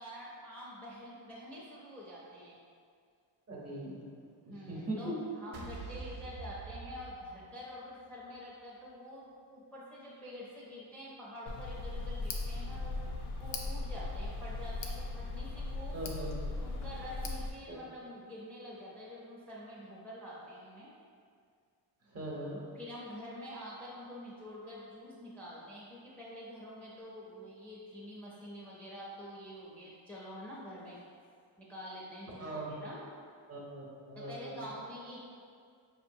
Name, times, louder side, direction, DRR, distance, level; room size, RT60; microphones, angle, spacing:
voice 1, 0.0-2.6 4.5-13.0 13.4-16.0 16.5-20.9 22.8-31.0 31.6-33.1 34.2-35.2, equal, 5° left, -7 dB, 0.4 m, -47 dB
voice 2, 3.5-5.2 15.9-16.5 17.7-17.8 22.1-22.7 32.4-32.7 33.5-34.6, right 1 dB, 30° right, -4 dB, 0.8 m, -41 dB
sound 1, 5.5-7.9, right 4 dB, 80° right, 0.7 m, -45 dB
Tick, 11.5-17.5, left 3 dB, 90° left, 0.6 m, -38 dB
5.2 x 2.8 x 2.6 m, 2.2 s
wide cardioid pair, 140°, 48 cm